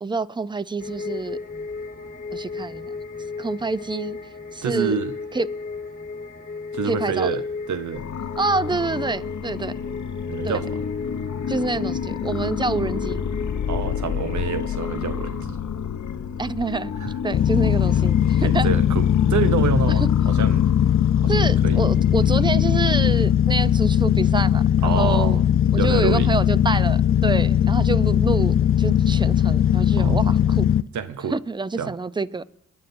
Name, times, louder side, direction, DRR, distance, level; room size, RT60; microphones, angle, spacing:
voice 1, 0.0-1.4 2.3-2.9 3.4-5.0 5.3-5.5 6.8-7.4 8.4-9.7 10.4-10.6 11.5-13.2 16.4-16.9 17.2-18.7 21.3-25.4 25.7-30.6 31.3-32.4, right 3 dB, 15° right, 16 dB, 0.5 m, -27 dB
sound 1, 0.8-15.4, left 4 dB, 25° left, 1.4 m, -35 dB
voice 2, 4.6-5.1 6.7-8.0 10.3-10.8 13.7-15.6 17.0-17.1 18.4-20.7 21.2-21.8 24.8-25.4 25.7-26.3 30.0-30.3 30.9-31.4 31.8-31.9, right 6 dB, 65° right, 11 dB, 0.8 m, -27 dB
sound 2, 7.9-23.2, left 7 dB, 65° left, 0.8 m, -30 dB
sound 3, 17.3-30.8, left 10 dB, 45° left, 0.4 m, -19 dB
23.0 x 10.5 x 2.6 m, 0.73 s
cardioid pair, 50°, 31 cm